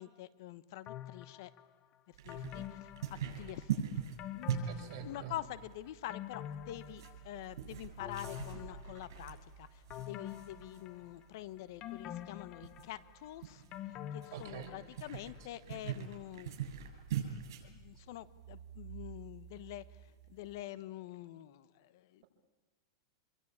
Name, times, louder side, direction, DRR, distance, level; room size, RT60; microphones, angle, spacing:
voice 1, 0.0-1.5 2.1-2.9 3.2-3.8 4.3-16.5 17.6-22.2, left 14 dB, 55° left, 16 dB, 1.0 m, -46 dB
sound 1, 0.9-1.7 2.3-3.7 4.2-5.5 5.9-7.5 8.0-9.3 9.9-11.3 11.8-15.1 15.4-15.5, left 11 dB, 30° left, 1.0 m, -46 dB
sound 2, 2.1-20.6, right 9 dB, 65° right, 7.4 m, -43 dB
voice 2, 4.7-5.3 14.3-14.7, right 8 dB, 50° right, 2 dB, 6.2 m, -46 dB
26.5 x 23.0 x 8.8 m, 1.4 s
supercardioid pair, 165°, 2 cm